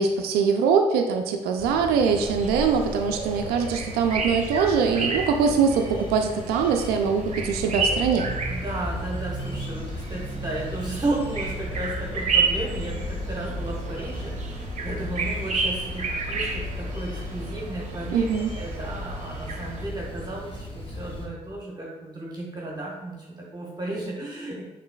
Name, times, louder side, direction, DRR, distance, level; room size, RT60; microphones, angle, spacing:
voice 1, 0.0-8.3 18.1-18.5, right 6 dB, 75° right, 4 dB, 0.4 m, -23 dB
sound 1, 1.6-21.3, left 1 dB, 35° left, 1.2 m, -35 dB
sound 2, 2.0-19.8, right 4 dB, 45° right, 0.8 m, -32 dB
voice 2, 8.4-18.3 18.6-24.6, right 2 dB, 25° right, -3 dB, 1.2 m, -34 dB
5.6 x 3.8 x 2.3 m, 1.1 s
hypercardioid pair, 45°, 16 cm